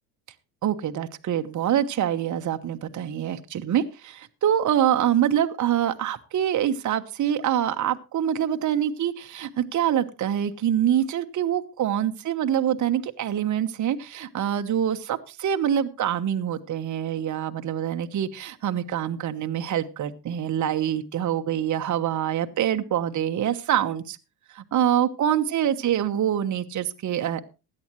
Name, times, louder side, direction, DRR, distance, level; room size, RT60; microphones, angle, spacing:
voice 1, 0.6-24.2 24.5-27.5, right 10 dB, 40° right, 8 dB, 1.1 m, -25 dB
16.5 x 10.5 x 3.1 m, 0.29 s
hypercardioid pair, 70°, 45 cm